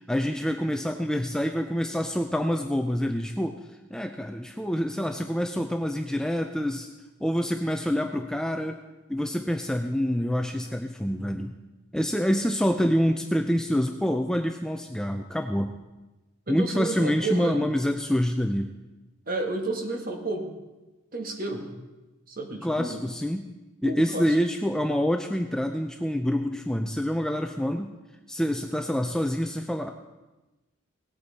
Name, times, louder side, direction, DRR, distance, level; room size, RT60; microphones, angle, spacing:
voice 1, 0.1-3.6 3.9-6.9 7.2-8.8 9.1-11.5 11.9-15.7 16.5-18.7 22.6-23.5 23.8-27.9 28.3-29.9, equal, 5° left, 5 dB, 0.4 m, -26 dB
voice 2, 16.5-17.7 19.3-20.5 21.1-21.7 22.3-23.0 23.8-24.4, right 2 dB, 45° right, 2 dB, 1.7 m, -31 dB
18.0 x 8.2 x 4.2 m, 1.1 s
head